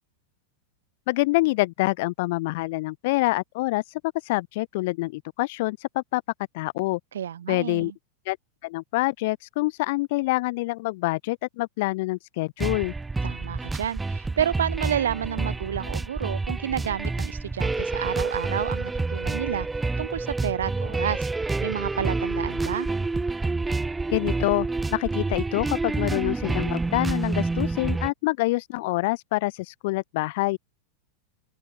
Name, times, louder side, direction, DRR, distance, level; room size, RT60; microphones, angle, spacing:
voice 1, 1.1-6.2 6.5-7.0 7.5-7.9 8.3-8.4 8.6-12.9 24.1-30.6, left 22 dB, 50° left, 0.5 m, -26 dB
voice 2, 7.1-7.9 13.2-19.7 20.0-21.3 21.6-22.9, right 9 dB, 65° right, 0.7 m, -30 dB
sound 1, 12.6-28.1, right 3 dB, 10° right, 2.4 m, -28 dB
figure-of-eight pair, 90°, 0 cm